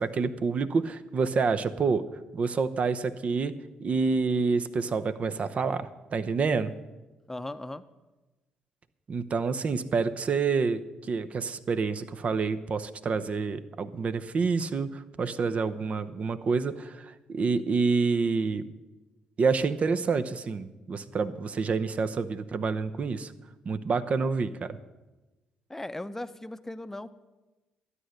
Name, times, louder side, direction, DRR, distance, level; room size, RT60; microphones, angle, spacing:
voice 1, 0.0-3.5 3.8-6.7 9.1-18.7 19.4-23.3 23.6-24.8, right 4 dB, 50° right, 12 dB, 0.8 m, -28 dB
voice 2, 7.3-7.8 25.7-27.1, left 1 dB, 15° left, 12 dB, 0.7 m, -37 dB
12.5 x 9.8 x 6.6 m, 1.1 s
hypercardioid pair, 55°, 3 cm